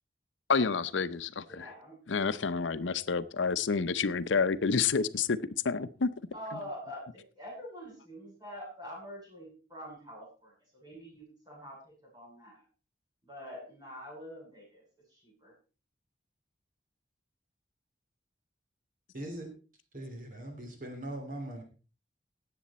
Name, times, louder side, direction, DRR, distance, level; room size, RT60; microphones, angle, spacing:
voice 1, 0.5-1.7 2.1-6.1, left 5 dB, 85° left, 0.7 m, -29 dB
voice 2, 1.5-2.0 6.3-12.7 13.2-15.5, equal, 20° right, 7.2 m, -46 dB
voice 3, 19.1-19.5 19.9-21.6, right 1 dB, 45° right, 3.0 m, -40 dB
17.5 x 7.8 x 4.2 m
head